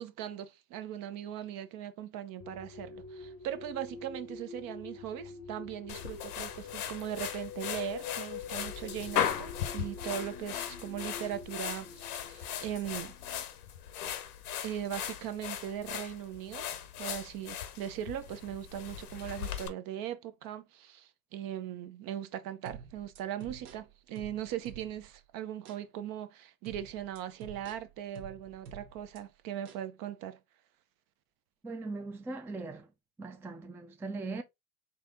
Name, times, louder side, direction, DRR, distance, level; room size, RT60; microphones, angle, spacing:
voice 1, 0.0-13.1 14.6-16.7 17.0-30.4, right 10 dB, 50° right, 0.8 m, -39 dB
sound 1, 2.4-13.4, left 5 dB, 40° left, 0.7 m, -46 dB
sound 2, 5.9-19.7, left 10 dB, 85° left, 0.8 m, -38 dB
sound 3, 22.7-25.2 25.7-25.8 26.7-29.2 29.7-29.9, right 6 dB, 65° right, 1.1 m, -49 dB
voice 2, 31.6-32.9 33.2-34.4, right 3 dB, 5° right, 0.4 m, -39 dB
4.1 x 2.9 x 3.5 m
hypercardioid pair, 95°, 44 cm